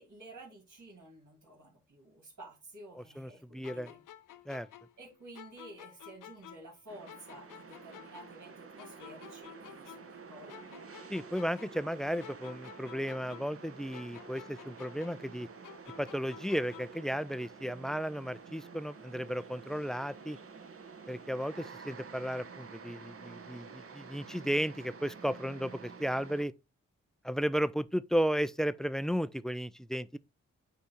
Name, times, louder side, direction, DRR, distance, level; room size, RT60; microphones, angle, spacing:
voice 1, 0.0-4.0 5.0-10.7, right 1 dB, 70° right, 2.7 m, -52 dB
voice 2, 2.9-3.9 4.5-4.7 11.1-15.5 16.0-20.4 21.1-26.5 27.2-30.2, equal, ahead, 0.3 m, -34 dB
sound 1, 3.6-6.8 7.1-10.2 10.5-13.7 13.9-17.1, left 11 dB, 85° left, 0.6 m, -52 dB
sound 2, 6.9-26.5, right 5 dB, 45° right, 0.9 m, -50 dB
8.3 x 2.8 x 4.4 m
cardioid pair, 50°, 31 cm